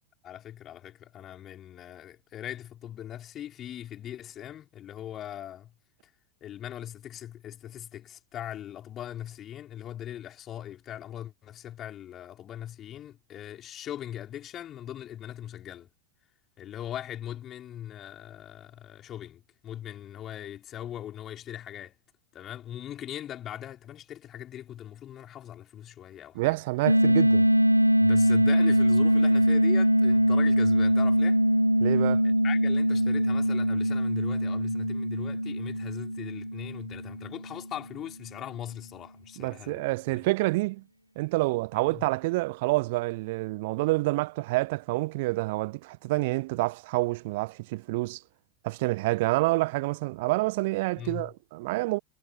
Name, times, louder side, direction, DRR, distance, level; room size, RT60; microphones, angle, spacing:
voice 1, 0.2-5.7 6.0-6.1 6.4-15.9 16.6-21.9 22.3-26.6 28.0-31.4 32.2-40.2 41.8-42.0 51.0-51.3, left 11 dB, 30° left, 4.6 m, -40 dB
voice 2, 26.3-27.5 31.8-32.2 39.4-40.8 41.2-48.2 48.6-52.0, right 22 dB, 50° right, 0.9 m, -28 dB
sound 1, 26.9-37.6, equal, 90° right, 1.0 m, -23 dB
figure-of-eight pair, 90°, 0 cm